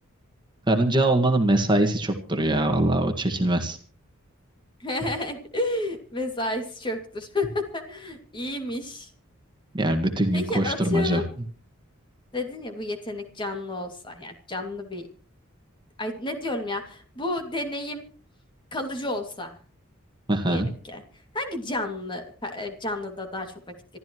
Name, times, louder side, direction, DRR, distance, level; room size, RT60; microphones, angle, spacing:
voice 1, 0.7-3.8 9.7-11.2 20.3-20.7, right 1 dB, 20° right, 5 dB, 1.8 m, -22 dB
voice 2, 4.8-9.1 10.3-11.3 12.3-15.1 16.0-18.0 18.7-19.6 20.5-21.0 21.3-23.6, left 2 dB, 25° left, 4 dB, 2.5 m, -31 dB
26.5 x 12.5 x 3.1 m, 0.42 s
head